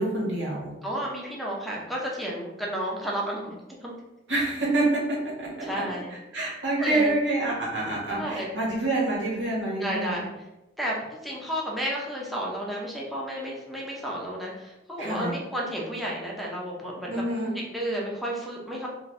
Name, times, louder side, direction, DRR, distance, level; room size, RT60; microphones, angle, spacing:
voice 1, 0.0-0.7 4.3-5.5 6.3-10.2 15.0-15.3 17.1-17.5, right 2 dB, 85° right, -5 dB, 1.4 m, -27 dB
voice 2, 0.8-3.5 3.8-3.9 5.6-6.1 6.8-7.1 8.2-8.5 9.8-10.3 10.8-17.1 17.4-18.9, equal, ahead, -4 dB, 0.6 m, -32 dB
3.9 x 2.5 x 3.1 m, 0.97 s
head